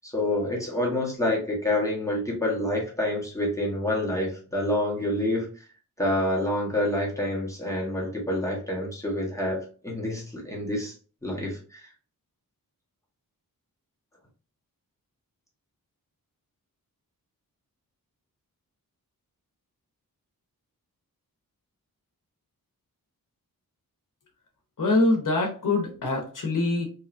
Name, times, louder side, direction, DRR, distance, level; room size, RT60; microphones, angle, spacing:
voice 1, 0.0-5.5 6.0-9.6 9.8-10.9 11.2-11.9, left 1 dB, 10° left, -3 dB, 0.9 m, -27 dB
voice 2, 24.8-26.9, left 2 dB, 60° left, 1 dB, 0.8 m, -24 dB
2.9 x 2.3 x 2.4 m, 0.39 s
wide cardioid pair, 105°, 36 cm